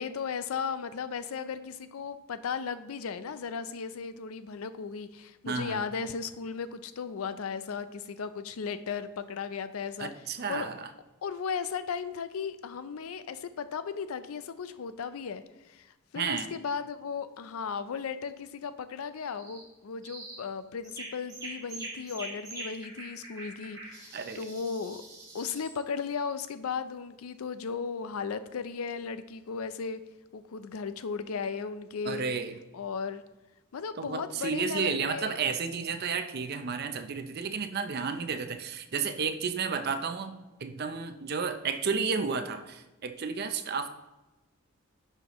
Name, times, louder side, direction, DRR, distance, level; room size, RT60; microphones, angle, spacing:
voice 1, 0.0-10.1 10.5-10.7 11.2-15.9 16.1-25.0 25.3-30.0 30.3-32.2 32.7-33.2 33.7-35.4, left 6 dB, 80° left, 12 dB, 0.4 m, -36 dB
voice 2, 5.5-5.8 10.0-10.9 16.1-16.5 24.1-24.5 32.0-32.6 34.0-40.3 40.6-43.9, right 5 dB, 50° right, 9 dB, 0.5 m, -32 dB
sound 1, 19.3-19.7 20.0-20.4 20.8-25.8, right 2 dB, 20° right, 2.2 m, -44 dB
10.5 x 5.6 x 3.0 m, 1.1 s
head